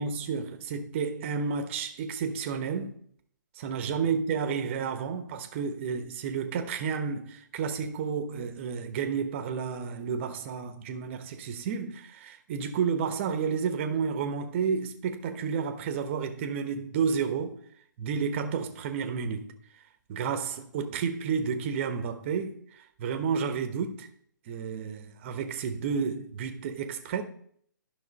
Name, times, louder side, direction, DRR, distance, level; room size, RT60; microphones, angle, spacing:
voice 1, 0.0-3.0 3.6-17.6 18.0-19.5 20.1-22.5 23.0-24.1 24.5-27.2, right 6 dB, 35° right, 1.1 m, -31 dB
11.0 x 5.8 x 4.1 m
hypercardioid pair, 145°, 11 cm